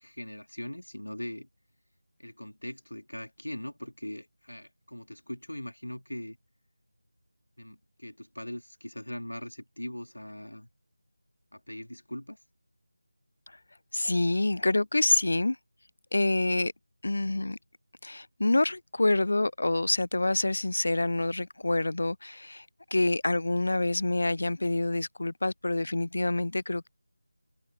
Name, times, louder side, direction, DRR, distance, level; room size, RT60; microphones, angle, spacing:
voice 1, 0.0-1.5 2.2-6.4 7.6-10.7 11.5-12.4, left 1 dB, 75° left, 2.7 m, -40 dB
voice 2, 13.9-15.6 16.1-16.7 17.0-17.6 18.0-26.9, left 2 dB, 50° left, 0.5 m, -27 dB
figure-of-eight pair, 165°, 0 cm